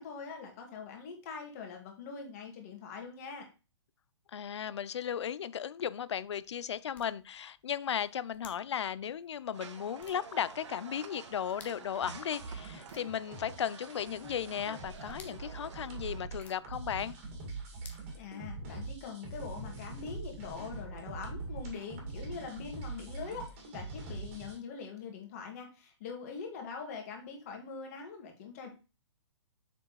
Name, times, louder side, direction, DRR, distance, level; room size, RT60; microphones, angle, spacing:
voice 1, 0.0-3.5 18.2-23.5 23.7-28.7, left 5 dB, 30° left, 2.0 m, -43 dB
voice 2, 4.3-17.1, left 9 dB, 65° left, 0.5 m, -36 dB
sound 1, 5.9-18.9, left 6 dB, 10° left, 0.7 m, -61 dB
sound 2, 9.5-16.2, right 6 dB, 75° right, 1.2 m, -50 dB
sound 3, 12.0-24.6, right 3 dB, 25° right, 2.1 m, -43 dB
6.8 x 6.2 x 3.1 m
hypercardioid pair, 165°, 15 cm